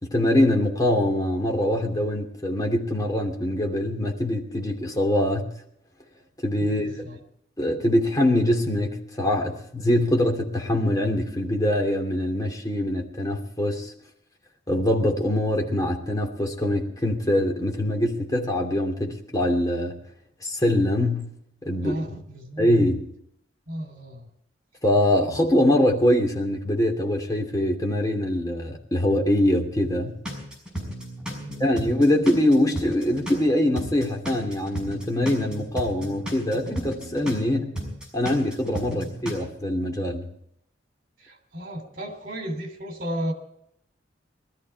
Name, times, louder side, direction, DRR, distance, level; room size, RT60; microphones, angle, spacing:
voice 1, 0.0-5.5 6.4-6.9 7.6-13.9 14.7-20.0 20.4-21.2 21.6-22.2 22.6-23.1 24.8-30.2 31.6-37.7 38.1-40.3, left 1 dB, 20° left, 1 dB, 2.7 m, -23 dB
voice 2, 6.6-7.2 21.8-22.7 23.7-24.3 25.5-25.6 31.3-31.8 38.9-39.1 41.2-43.3, equal, 50° right, 4 dB, 3.3 m, -34 dB
sound 1, 30.3-33.4 33.8-37.5 37.8-39.3, equal, 5° right, 5.9 m, -34 dB
20.5 x 13.5 x 4.7 m, 0.72 s
head